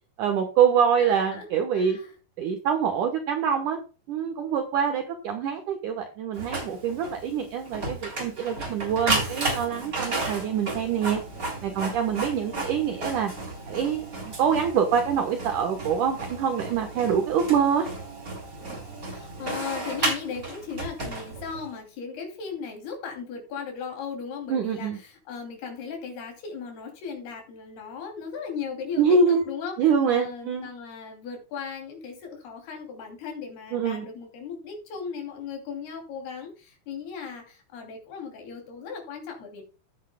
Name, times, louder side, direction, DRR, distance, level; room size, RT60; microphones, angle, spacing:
voice 1, 0.2-2.0 2.4-3.8 4.1-11.2 11.6-13.3 13.7-17.9 24.5-25.0 29.0-29.5 29.8-30.7 33.7-34.0, right 7 dB, 65° right, 5 dB, 2.3 m, -25 dB
voice 2, 1.0-1.5 1.7-2.1 19.1-39.6, left 6 dB, 80° left, 2 dB, 4.8 m, -37 dB
Printer, 6.4-21.7, right 2 dB, 20° right, 3.6 m, -33 dB
14.0 x 9.2 x 2.2 m, 0.33 s
omnidirectional pair, 4.5 m